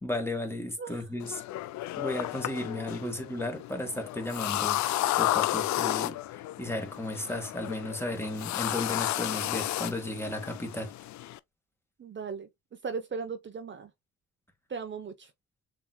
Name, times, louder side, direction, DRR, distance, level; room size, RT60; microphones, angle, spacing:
voice 1, 0.0-1.4 2.0-4.8 5.2-6.2 6.6-10.9, left 1 dB, 10° left, 1.7 m, -34 dB
sound 1, 1.2-11.4, left 15 dB, 70° left, 0.5 m, -32 dB
voice 2, 12.0-12.5 12.8-13.9 14.7-15.3, right 5 dB, 40° right, 0.9 m, -37 dB
7.1 x 3.1 x 2.2 m
cardioid pair, 90°, 30 cm